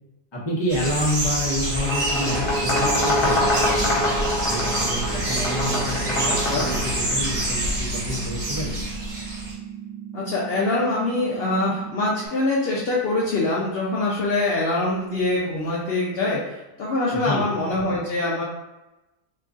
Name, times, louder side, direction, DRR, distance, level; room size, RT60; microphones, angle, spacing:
voice 1, 0.3-3.9 4.4-8.8 17.1-17.4, equal, 25° left, -5 dB, 0.6 m, -28 dB
sound 1, 0.7-9.5, right 1 dB, 35° right, 0.9 m, -27 dB
sound 2, 1.7-7.4, left 1 dB, 60° left, 1.3 m, -25 dB
sound 3, 2.3-12.3, right 10 dB, 70° right, 0.7 m, -38 dB
voice 2, 10.1-18.4, left 2 dB, 80° left, -5 dB, 0.5 m, -24 dB
3.0 x 2.4 x 3.7 m, 1.0 s
omnidirectional pair, 1.7 m